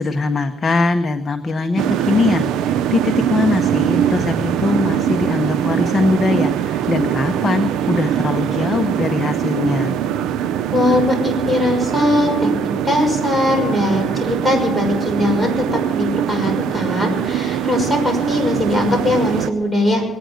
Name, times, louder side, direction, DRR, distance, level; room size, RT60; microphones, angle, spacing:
voice 1, 0.0-10.0, left 3 dB, 35° left, 6 dB, 0.9 m, -21 dB
sound 1, 1.8-19.5, right 10 dB, 90° right, 0.5 m, -22 dB
voice 2, 10.7-20.0, left 1 dB, ahead, 1 dB, 6.0 m, -20 dB
21.5 x 9.3 x 6.4 m, 1.0 s
cardioid pair, 90°, 0 cm